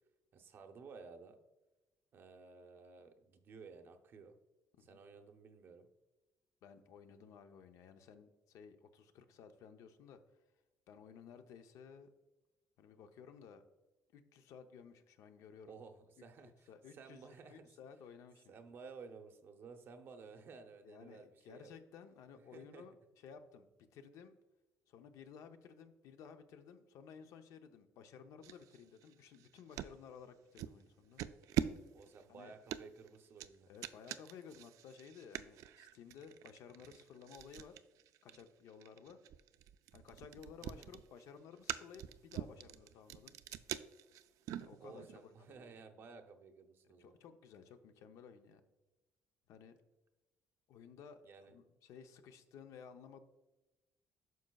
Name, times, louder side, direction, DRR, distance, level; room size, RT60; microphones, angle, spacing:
voice 1, 0.3-1.4 2.1-4.4 4.8-5.9 15.6-17.7 18.5-21.7 22.5-22.9 31.9-33.7 40.6-40.9 44.8-47.2 51.2-51.6, right 5 dB, 45° right, 7 dB, 0.7 m, -55 dB
voice 2, 6.6-10.2 10.9-12.1 12.8-13.6 14.1-15.8 16.2-16.3 16.7-18.5 20.8-22.9 23.2-24.3 24.9-31.2 32.3-32.5 33.7-37.8 38.2-39.2 39.9-43.3 44.6-45.7 47.0-48.6 49.5-49.8 50.7-53.2, left 6 dB, 75° left, 8 dB, 0.7 m, -56 dB
sound 1, 28.4-30.0 30.6-30.8 31.2-45.2, right 12 dB, 80° right, 0.3 m, -44 dB
9.3 x 6.3 x 2.3 m, 1.1 s
cardioid pair, 170°, 5 cm